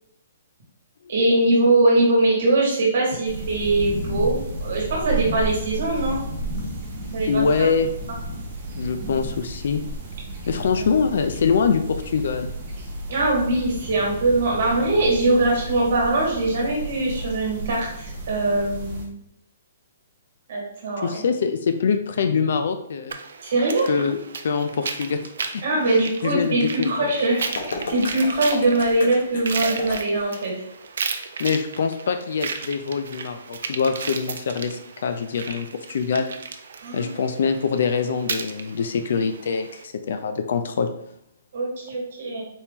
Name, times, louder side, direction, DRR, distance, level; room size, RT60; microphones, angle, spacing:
voice 1, 1.1-6.2 7.1-7.7 13.1-19.1 20.5-21.2 23.4-23.9 25.6-30.5 36.8-37.1 41.5-42.4, right 2 dB, 45° right, -3 dB, 1.6 m, -22 dB
sound 1, 3.2-19.0, right 1 dB, 25° right, 0.8 m, -32 dB
voice 2, 7.3-7.9 8.8-9.8 10.5-12.5 21.0-23.2 23.9-24.2 24.4-27.1 31.4-36.3 36.9-40.9, left 5 dB, 50° left, 8 dB, 0.4 m, -24 dB
sound 2, 23.1-39.8, right 5 dB, 65° right, 0.5 m, -35 dB
sound 3, 27.3-30.4, left 3 dB, 70° left, 1.0 m, -33 dB
4.3 x 2.9 x 3.5 m, 0.76 s
hypercardioid pair, 180°, 0 cm